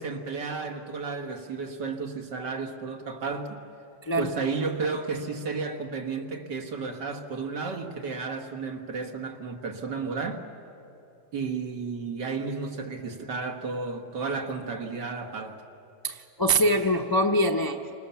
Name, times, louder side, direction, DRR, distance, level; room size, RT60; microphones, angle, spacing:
voice 1, 0.0-3.6 4.2-10.4 11.3-15.6, right 4 dB, 65° right, 2.3 m, -32 dB
voice 2, 4.0-4.3 16.0-17.8, right 1 dB, 35° left, 0.3 m, -24 dB
29.0 x 25.5 x 7.0 m
omnidirectional pair, 2.0 m